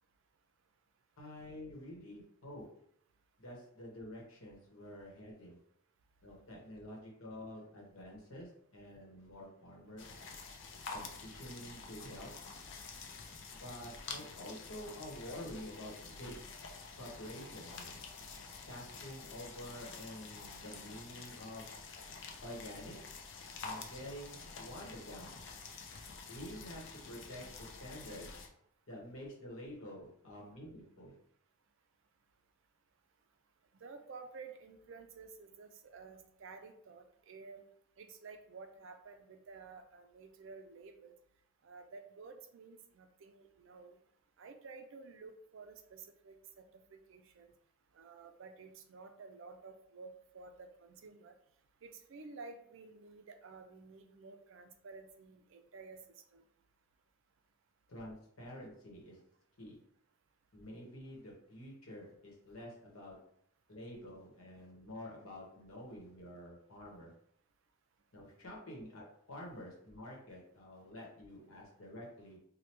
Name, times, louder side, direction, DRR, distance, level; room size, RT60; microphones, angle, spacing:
voice 1, 1.2-2.7 3.4-5.6 6.2-10.1 10.9-12.3 13.5-16.4 17.0-18.0 18.7-21.7 22.4-23.0 23.6-25.4 26.3-28.3 28.9-31.1 57.9-59.2 59.6-59.8 60.5-63.2 63.7-67.1 68.1-72.4, left 1 dB, 70° left, -2 dB, 1.0 m, -49 dB
sound 1, 10.0-28.5, left 4 dB, 55° left, 0.4 m, -48 dB
voice 2, 33.8-37.6 38.0-41.1 41.6-44.0 44.4-47.5 47.9-51.3 51.8-56.0 56.3-56.5, right 4 dB, 60° right, 6 dB, 0.4 m, -52 dB
3.2 x 2.2 x 2.9 m, 0.70 s
head